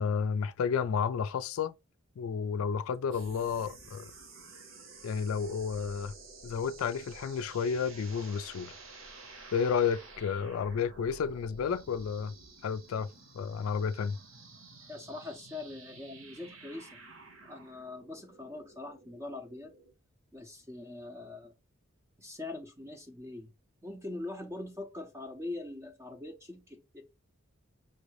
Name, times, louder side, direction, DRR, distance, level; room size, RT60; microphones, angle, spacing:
voice 1, 0.0-1.8 2.2-4.1 5.0-6.1 6.4-8.7 9.5-12.3 12.6-13.1 13.3-14.2, left 6 dB, 80° left, 0.3 m, -31 dB
sound 1, 3.1-19.9, right 3 dB, 65° right, 1.1 m, -51 dB
voice 2, 14.9-17.0 17.5-19.7 20.3-21.5 22.2-23.5 23.8-27.0, left 2 dB, 15° right, 0.5 m, -42 dB
5.4 x 2.6 x 3.1 m
head